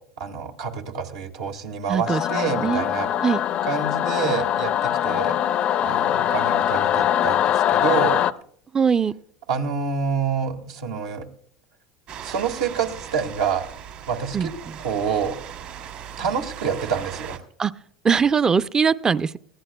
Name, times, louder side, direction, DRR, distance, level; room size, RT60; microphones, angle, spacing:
voice 1, 0.2-3.1 3.6-5.3 5.8-8.2 9.5-11.3 12.2-13.7 14.1-14.5 14.8-15.4 16.2-17.4, right 6 dB, 85° right, 3 dB, 1.8 m, -27 dB
voice 2, 1.9-2.9 3.2-3.4 8.7-9.1 14.3-14.5 17.6-17.7 18.0-19.4, right 6 dB, 25° right, 16 dB, 0.5 m, -21 dB
Singing / Musical instrument, 2.1-8.3, left 11 dB, 45° left, 0.5 m, -22 dB
sound 1, 12.1-17.4, right 9 dB, 60° right, 2.3 m, -38 dB
20.0 x 15.0 x 2.2 m, 0.62 s
supercardioid pair, 100°, 3 cm